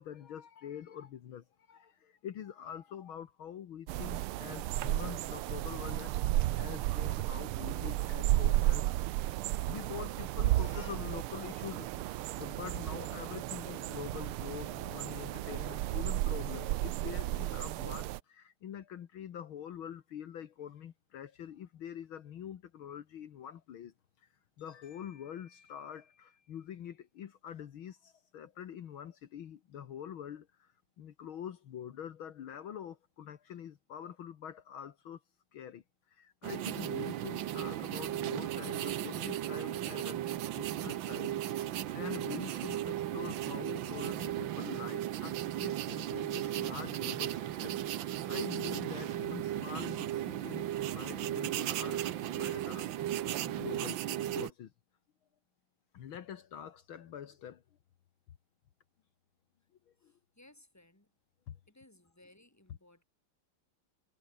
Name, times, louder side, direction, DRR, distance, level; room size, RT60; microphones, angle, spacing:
voice 1, 0.0-8.9 9.2-24.3 24.6-35.2 35.5-54.0 54.3-54.7 55.9-57.6 59.9-60.1 61.5-61.6, left 9 dB, 70° left, 2.0 m, -45 dB
sound 1, 3.9-18.2, right 16 dB, 80° right, 1.6 m, -33 dB
sound 2, 36.4-54.5, right 12 dB, 65° right, 1.5 m, -36 dB
voice 2, 60.0-61.1 61.7-63.0, left 1 dB, 5° left, 3.7 m, -61 dB
omnidirectional pair, 2.4 m